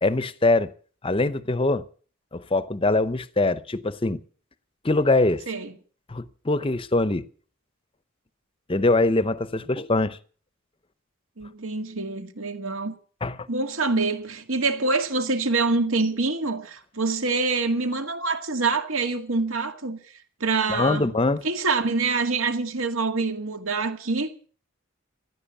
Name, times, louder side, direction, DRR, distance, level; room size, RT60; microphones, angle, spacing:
voice 1, 0.0-0.7 1.0-1.8 2.3-4.2 4.8-5.4 6.1-7.3 8.7-10.2 13.2-13.5 20.7-21.4, left 2 dB, 25° left, 0.7 m, -23 dB
voice 2, 11.4-12.9 13.5-20.0 20.4-21.2 21.4-24.5, right 3 dB, 75° right, 2.0 m, -26 dB
15.5 x 11.0 x 7.1 m
head